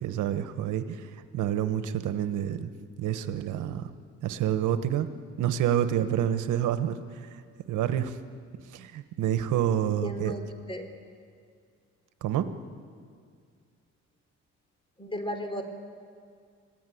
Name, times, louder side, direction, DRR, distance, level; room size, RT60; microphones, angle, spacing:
voice 1, 0.0-2.7 3.0-3.9 4.2-5.1 5.4-7.4 7.7-8.2 8.7-10.3 12.2-12.5, right 10 dB, 85° right, 10 dB, 1.2 m, -28 dB
voice 2, 9.8-10.4 10.7-10.9 15.0-15.7, equal, 15° left, 6 dB, 3.5 m, -35 dB
24.5 x 16.0 x 9.4 m, 2.2 s
cardioid pair, 90°, 30 cm